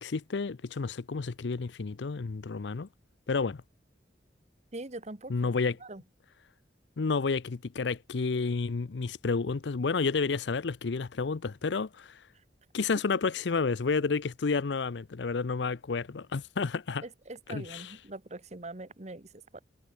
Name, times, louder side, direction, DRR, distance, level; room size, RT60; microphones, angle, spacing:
voice 1, 0.0-2.9 3.3-3.6 5.3-5.7 7.0-12.2 12.7-17.0 17.5-17.9, left 4 dB, 75° left, 0.6 m, -30 dB
voice 2, 4.7-5.5 5.8-6.0 17.0-19.6, right 2 dB, 40° right, 1.5 m, -43 dB
head